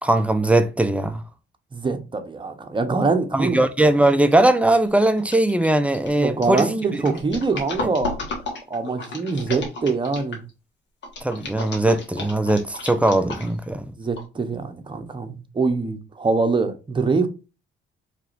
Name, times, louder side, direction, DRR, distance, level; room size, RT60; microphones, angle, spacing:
voice 1, 0.0-1.2 3.3-6.7 11.2-13.9, right 1 dB, 5° right, 0.6 m, -19 dB
voice 2, 1.7-3.6 6.2-8.2 8.7-10.4 14.0-17.3, right 4 dB, 25° right, 0.9 m, -24 dB
sound 1, 4.1-4.3 4.6-10.5 11.0-13.7 14.2-14.3, left 2 dB, 65° left, 1.6 m, -33 dB
4.6 x 3.3 x 2.6 m
cardioid pair, 90°, 20 cm